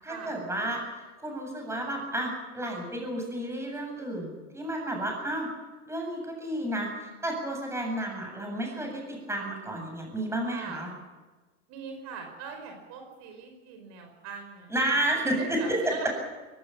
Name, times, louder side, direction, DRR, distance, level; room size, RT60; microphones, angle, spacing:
voice 1, 0.0-5.5 5.8-10.9 14.7-16.1, right 1 dB, 5° right, 1 dB, 8.0 m, -31 dB
voice 2, 10.5-10.8 11.7-14.9 15.4-16.1, right 5 dB, 45° right, 4 dB, 5.2 m, -41 dB
21.5 x 18.5 x 8.8 m, 1.3 s
supercardioid pair, 125°, 38 cm